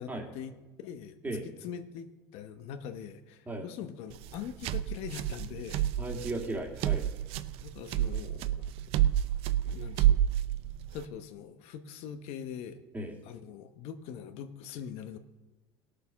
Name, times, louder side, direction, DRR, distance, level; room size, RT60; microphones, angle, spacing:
voice 1, 0.0-1.2 1.4-5.9 7.6-8.7 9.0-9.1 9.6-10.2 10.9-12.8 13.2-15.2, left 8 dB, 70° left, 8 dB, 1.0 m, -42 dB
sound 1, 4.1-11.0, right 12 dB, 65° right, 0.6 m, -29 dB
voice 2, 6.0-7.1 12.9-13.2, right 2 dB, 15° right, 2 dB, 2.2 m, -36 dB
17.5 x 6.7 x 5.8 m, 1.1 s
supercardioid pair, 120°, 11 cm